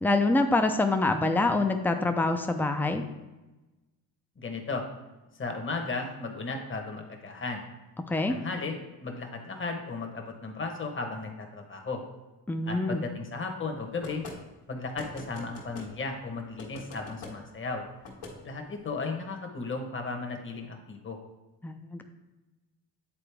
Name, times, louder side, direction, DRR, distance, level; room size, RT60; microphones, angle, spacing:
voice 1, 0.0-3.0 8.1-8.3 12.5-13.0 21.6-22.0, left 2 dB, 5° left, 6 dB, 0.5 m, -25 dB
voice 2, 4.4-4.8 5.4-7.6 8.1-12.0 12.6-14.2 14.7-17.9 18.4-21.2, left 3 dB, 30° left, 3 dB, 1.2 m, -35 dB
sound 1, 14.0-14.4 15.0-15.9 16.6-17.3 18.0-18.4, left 3 dB, 75° left, 1.6 m, -42 dB
8.8 x 4.0 x 3.4 m, 1.1 s
cardioid pair, 90°, 39 cm